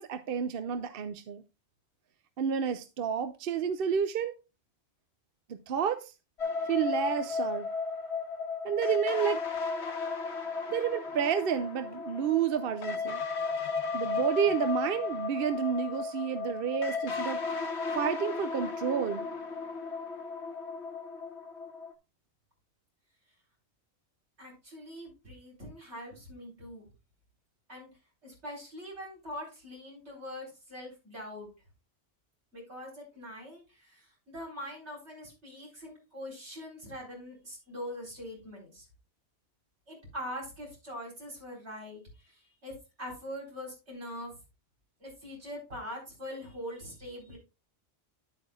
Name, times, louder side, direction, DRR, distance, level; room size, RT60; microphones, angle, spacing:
voice 1, 0.0-1.4 2.4-4.3 5.7-6.1 6.7-7.7 8.6-9.4 10.7-13.2 13.9-17.4 17.9-19.2, right 7 dB, 60° right, 0.8 m, -30 dB
sound 1, 6.4-21.9, left 4 dB, 75° left, 1.3 m, -35 dB
voice 2, 24.4-26.9 27.7-27.9 28.2-31.5 32.5-38.8 39.9-42.7 43.0-44.3 45.0-47.4, equal, 85° right, 4.6 m, -43 dB
10.0 x 7.9 x 2.4 m
omnidirectional pair, 1.1 m